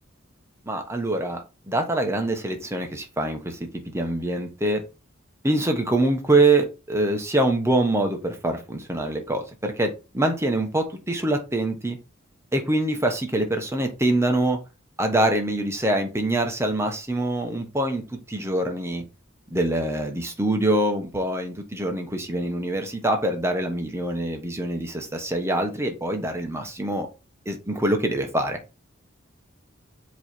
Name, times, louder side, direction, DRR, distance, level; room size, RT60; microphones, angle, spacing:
voice 1, 0.6-4.8 5.4-12.0 12.5-14.6 15.0-19.0 19.5-27.1 27.4-28.6, right 1 dB, 15° right, 1.2 m, -24 dB
7.8 x 3.3 x 4.4 m
head